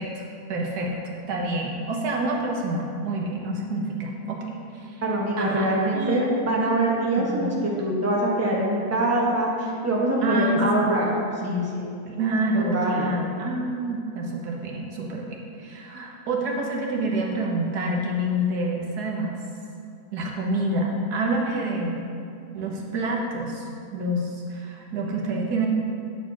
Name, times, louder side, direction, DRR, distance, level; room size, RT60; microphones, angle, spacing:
voice 1, 0.0-5.0 5.4-6.5 7.2-7.4 10.2-11.0 11.4-11.7 12.1-19.4 20.1-22.0 22.5-25.7, right 1 dB, 90° right, -1 dB, 1.6 m, -28 dB
voice 2, 5.0-11.1 11.4-11.9 12.6-13.1, right 1 dB, 10° right, -4 dB, 1.0 m, -24 dB
8.9 x 4.5 x 6.0 m, 2.5 s
omnidirectional pair, 1.6 m